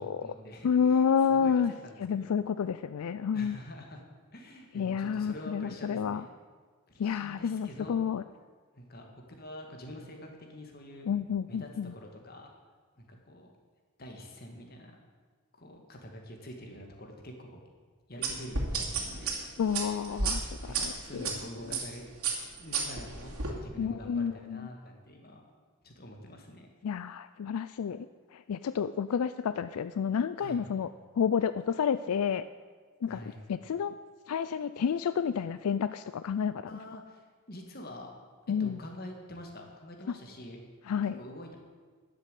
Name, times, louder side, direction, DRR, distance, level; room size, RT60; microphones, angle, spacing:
voice 1, 0.0-2.3 3.3-4.0 4.3-6.4 6.9-8.0 8.7-9.0 9.4-11.1 11.5-12.5 13.0-13.5 14.0-15.0 15.6-17.6 18.1-19.4 20.6-22.1 22.6-25.4 25.8-26.7 30.4-30.6 33.1-33.4 36.7-38.1 38.6-40.6 41.2-41.6, equal, 45° left, 2 dB, 1.9 m, -46 dB
voice 2, 0.6-1.7 2.0-3.6 4.7-6.3 7.0-8.2 11.1-11.9 19.6-21.3 21.7-21.8 23.8-24.7 26.8-28.1 28.3-30.9 31.1-32.4 33.0-33.2 33.5-33.9 34.3-36.7 38.5-38.8 40.9-41.2, left 7 dB, 85° left, 13 dB, 0.4 m, -30 dB
sound 1, 18.2-21.3 21.7-21.9 22.2-23.5, right 5 dB, 85° right, 2.6 m, -32 dB
12.0 x 7.0 x 8.3 m, 1.5 s
head